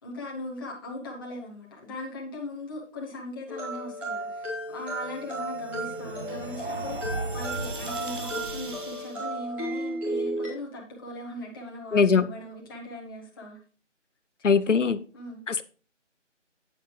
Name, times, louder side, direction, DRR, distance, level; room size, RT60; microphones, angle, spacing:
voice 1, 0.0-13.6 14.4-14.7 15.1-15.4, left 1 dB, 20° left, 1.9 m, -39 dB
sound 1, 3.5-10.5, right 1 dB, 5° right, 1.4 m, -34 dB
sound 2, 4.8-9.3, right 3 dB, 40° right, 1.7 m, -37 dB
voice 2, 11.9-12.3 14.4-15.0 15.5-15.6, left 5 dB, 75° left, 0.8 m, -21 dB
9.5 x 9.0 x 3.2 m
figure-of-eight pair, 155°, 37 cm